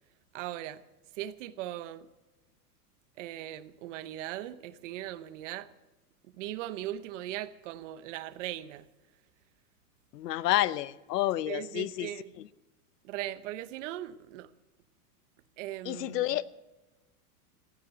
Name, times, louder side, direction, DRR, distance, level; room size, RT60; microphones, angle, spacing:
voice 1, 0.3-0.8 1.1-2.1 3.2-5.7 6.4-8.9 11.5-12.3 13.0-14.5 15.6-16.2, right 13 dB, 50° right, 0.9 m, -39 dB
voice 2, 10.1-12.1 15.8-16.5, left 15 dB, 85° left, 0.8 m, -29 dB
15.0 x 9.7 x 7.7 m
supercardioid pair, 155°, 47 cm